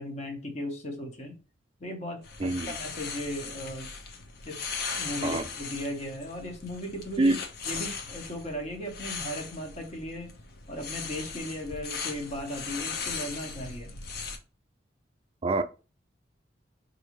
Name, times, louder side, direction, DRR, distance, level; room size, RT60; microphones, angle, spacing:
voice 1, 0.0-1.4 1.8-3.9 4.4-4.7 5.0-7.4 7.6-10.3 10.7-13.9, left 1 dB, 35° left, 1.0 m, -37 dB
sound 1, 2.2-14.4, left 5 dB, 50° left, 0.6 m, -38 dB
voice 2, 2.4-2.7 5.2-5.4 7.2-7.4 15.4-15.6, right 2 dB, 30° right, 0.3 m, -25 dB
4.7 x 2.7 x 3.0 m
head